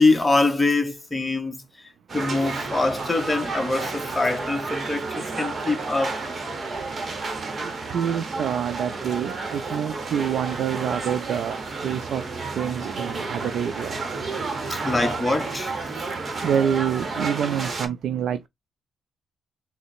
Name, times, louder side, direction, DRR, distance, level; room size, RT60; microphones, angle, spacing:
voice 1, 0.0-6.2 14.7-15.9, left 2 dB, 15° left, 0.8 m, -24 dB
sound 1, 2.1-17.9, right 3 dB, 35° right, 0.9 m, -31 dB
voice 2, 7.6-12.2 12.6-14.2 16.4-18.5, right 8 dB, 70° right, 0.3 m, -27 dB
3.8 x 2.0 x 4.1 m
cardioid pair, 90°, 0 cm